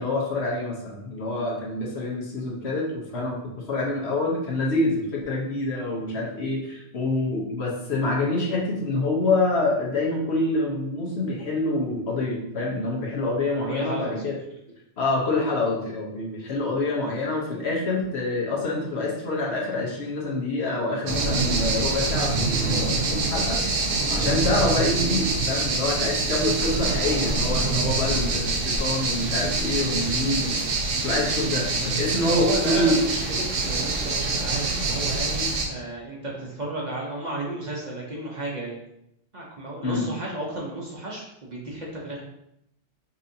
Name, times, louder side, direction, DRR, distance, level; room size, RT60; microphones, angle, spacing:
voice 1, 0.0-3.4 3.7-14.4 15.0-23.6 24.1-30.6 31.0-33.0 39.8-40.1, left 2 dB, 60° left, -3 dB, 1.1 m, -26 dB
voice 2, 13.7-14.2 32.2-38.8 39.3-42.2, right 1 dB, 40° right, -4 dB, 0.8 m, -33 dB
sound 1, 21.1-35.7, right 3 dB, 85° right, 1.0 m, -25 dB
5.5 x 2.6 x 2.7 m, 0.79 s
omnidirectional pair, 1.3 m